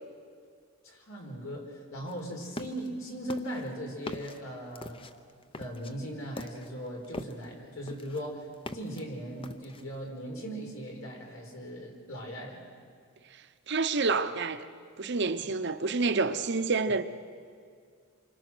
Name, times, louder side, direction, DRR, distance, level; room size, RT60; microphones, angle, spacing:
voice 1, 0.8-5.1 5.5-12.6 15.4-15.5, equal, 75° left, 4.8 m, -39 dB
sound 1, 2.1-2.9 3.3-7.6 7.9-9.0 9.4-10.0, left 1 dB, 25° left, 0.8 m, -42 dB
voice 2, 13.7-14.6 15.0-17.0, right 4 dB, 55° right, 0.9 m, -28 dB
27.5 x 25.0 x 6.2 m
head